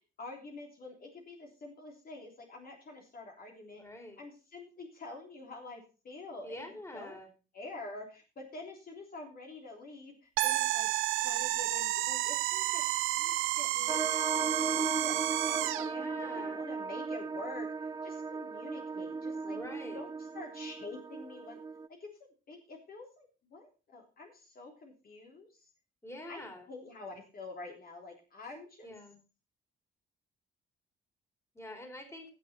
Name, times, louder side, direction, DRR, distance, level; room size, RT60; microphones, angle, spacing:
voice 1, 0.2-3.8 4.2-7.2 7.5-10.9 11.1-14.1 14.6-19.6 19.9-21.6 21.9-25.7 26.3-28.9, left 3 dB, 50° left, 1 dB, 3.4 m, -47 dB
voice 2, 3.7-4.2 6.4-7.3 15.8-16.6 19.4-20.0 26.0-26.7 28.8-29.1 31.5-32.3, left 1 dB, 15° left, 4 dB, 4.0 m, -46 dB
sound 1, 10.4-15.9, right 16 dB, 90° right, 0.6 m, -31 dB
sound 2, 13.9-21.9, right 4 dB, 20° right, 0.5 m, -37 dB
17.0 x 6.7 x 4.3 m, 0.32 s
cardioid pair, 90°, 20 cm